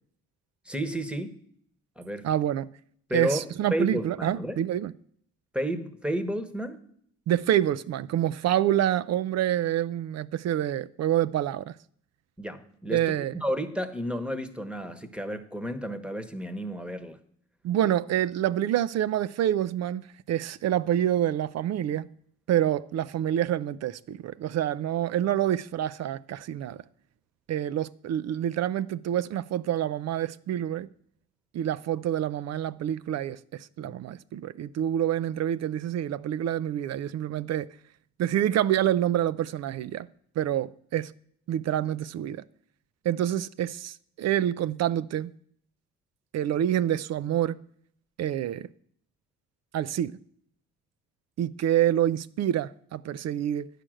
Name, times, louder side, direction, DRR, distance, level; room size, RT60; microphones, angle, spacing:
voice 1, 0.6-1.3 2.0-2.3 3.1-3.4 3.7-4.6 5.5-6.8 12.4-13.0 13.3-17.2 33.8-33.9, equal, 5° right, 1.0 m, -31 dB
voice 2, 2.2-2.7 3.1-4.9 7.3-11.7 12.9-13.3 17.6-22.1 22.5-26.8 27.5-30.9 31.5-37.7 38.2-40.1 40.4-41.1 41.5-42.4 43.0-45.3 46.3-47.6 48.2-48.7 49.7-50.2 51.4-53.7, right 11 dB, 60° right, 0.4 m, -27 dB
9.9 x 5.0 x 7.6 m
cardioid pair, 90°, 30 cm